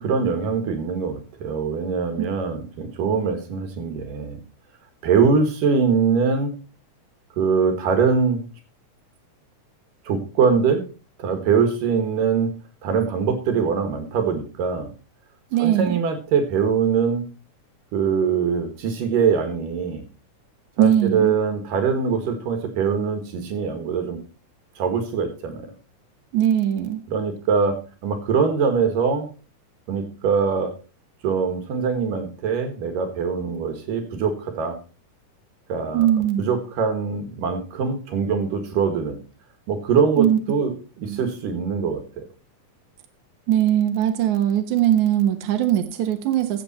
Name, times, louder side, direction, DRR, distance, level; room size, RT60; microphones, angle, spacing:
voice 1, 0.0-4.4 5.0-6.6 7.4-8.4 10.0-10.8 11.2-12.6 12.8-14.9 15.6-17.3 17.9-20.0 20.8-24.2 24.8-25.7 27.1-29.3 29.9-30.7 31.2-34.8 35.7-36.1 36.4-39.2 39.7-42.2, right 6 dB, 85° right, 8 dB, 3.4 m, -23 dB
voice 2, 15.5-16.0 20.8-21.3 26.3-27.0 35.9-36.5 40.2-40.4 41.1-41.2 43.5-46.6, right 11 dB, 70° right, 6 dB, 2.4 m, -20 dB
13.5 x 7.7 x 4.3 m, 0.35 s
omnidirectional pair, 3.7 m